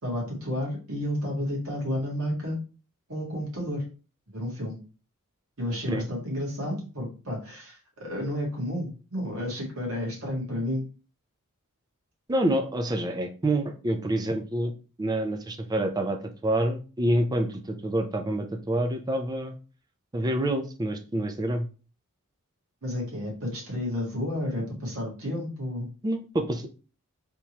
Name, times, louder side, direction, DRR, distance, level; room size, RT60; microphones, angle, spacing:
voice 1, 0.0-2.6 3.1-3.8 4.3-4.8 5.6-10.8 22.8-25.9, left 1 dB, 65° right, -2 dB, 1.6 m, -31 dB
voice 2, 12.3-14.7 15.0-16.2 16.4-19.6 20.1-21.7 26.0-26.7, right 1 dB, 15° right, 6 dB, 0.4 m, -27 dB
3.5 x 2.9 x 2.8 m, 0.35 s
head